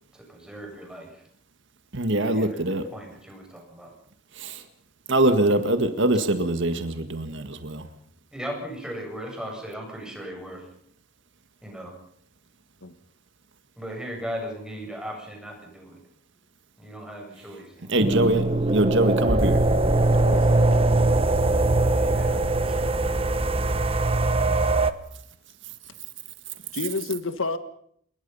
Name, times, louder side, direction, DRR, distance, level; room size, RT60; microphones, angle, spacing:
voice 1, 0.1-1.2 2.3-3.9 8.3-10.6 11.6-12.0 13.8-16.0 16.8-18.3 21.8-22.4 22.7-23.0, equal, 5° right, 0 dB, 7.9 m, -38 dB
voice 2, 1.9-2.9 4.4-4.6 5.1-7.9 17.9-19.6, right 1 dB, 55° right, 8 dB, 1.9 m, -23 dB
sound 1, 18.0-24.9, right 2 dB, 25° right, 1.1 m, -21 dB
voice 3, 20.1-21.0 26.7-27.6, left 3 dB, 70° left, 10 dB, 1.7 m, -31 dB
28.5 x 21.0 x 5.6 m, 0.65 s
head